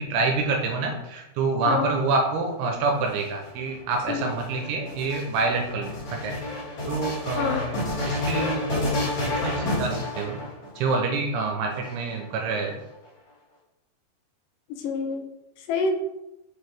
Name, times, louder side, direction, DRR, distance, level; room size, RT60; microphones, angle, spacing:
voice 1, 0.0-6.4 6.9-7.7 8.1-10.4 10.8-12.8, right 3 dB, 80° right, 3 dB, 2.6 m, -27 dB
voice 2, 1.6-2.0 4.1-4.3 7.4-7.6 14.7-15.2 15.7-16.0, left 4 dB, 80° left, 3 dB, 2.8 m, -27 dB
sound 1, 3.0-10.9 11.7-12.6, left 2 dB, 35° left, 2.7 m, -30 dB
6.2 x 5.6 x 3.5 m, 0.94 s
omnidirectional pair, 5.0 m